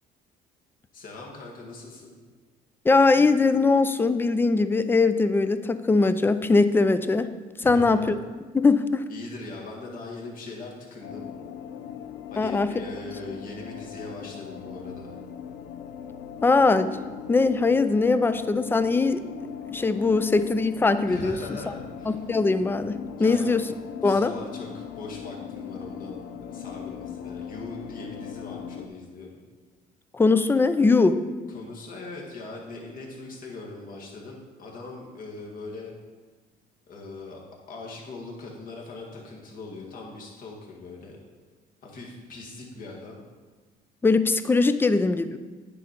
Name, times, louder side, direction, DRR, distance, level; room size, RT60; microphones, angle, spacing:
voice 1, 0.9-2.2 7.6-8.2 9.1-11.3 12.3-15.2 21.1-22.2 23.2-23.6 24.0-26.2 26.5-29.3 31.5-35.9 36.9-37.4 37.7-41.2 41.8-43.2, left 2 dB, 55° left, -1 dB, 1.9 m, -40 dB
voice 2, 2.8-7.3 7.6-8.1 8.5-9.0 12.4-12.7 16.4-16.9 17.3-19.2 19.7-21.4 22.1-23.6 24.0-24.3 30.1-31.2 44.0-45.4, left 3 dB, 15° left, 12 dB, 0.4 m, -21 dB
sound 1, 11.0-28.9, left 8 dB, 75° left, 0.6 m, -39 dB
9.8 x 5.2 x 4.4 m, 1.4 s
cardioid pair, 110°, 17 cm